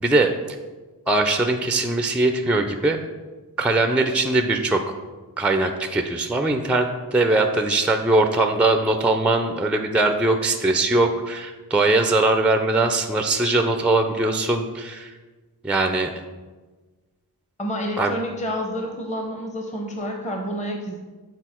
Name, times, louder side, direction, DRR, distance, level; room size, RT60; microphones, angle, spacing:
voice 1, 1.1-3.0 3.6-4.9 5.4-15.1 15.6-16.1 18.0-18.1, right 2 dB, 5° right, 6 dB, 0.4 m, -21 dB
voice 2, 17.6-21.0, equal, 20° left, 2 dB, 0.8 m, -29 dB
8.2 x 4.1 x 4.3 m, 1.3 s
wide cardioid pair, 130°, 38 cm